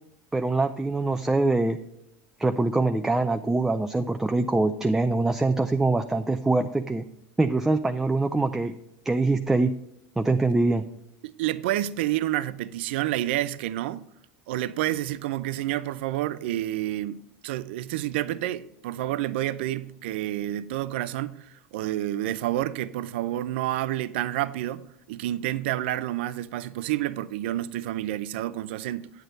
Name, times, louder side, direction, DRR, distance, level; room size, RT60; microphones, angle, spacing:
voice 1, 0.3-1.8 2.4-7.0 7.4-8.7 9.1-9.7 10.2-10.9, right 2 dB, 5° right, 0.4 m, -24 dB
voice 2, 11.2-14.0 14.5-29.1, right 14 dB, 80° right, 0.5 m, -29 dB
9.2 x 8.3 x 3.9 m
supercardioid pair, 125°, 6 cm